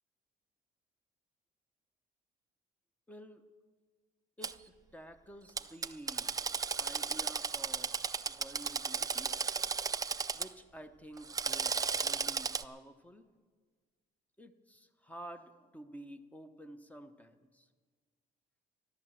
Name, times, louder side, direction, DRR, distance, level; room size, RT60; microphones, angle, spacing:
voice 1, 3.1-3.4 4.4-6.4 6.8-9.4 10.3-13.3 14.4-17.7, right 1 dB, 10° left, 9 dB, 0.9 m, -51 dB
Drill, 4.4-4.5 5.6-10.5 11.2-12.6, right 5 dB, 20° right, 0.4 m, -34 dB
14.0 x 11.5 x 7.5 m, 1.5 s
cardioid pair, 110°, 17 cm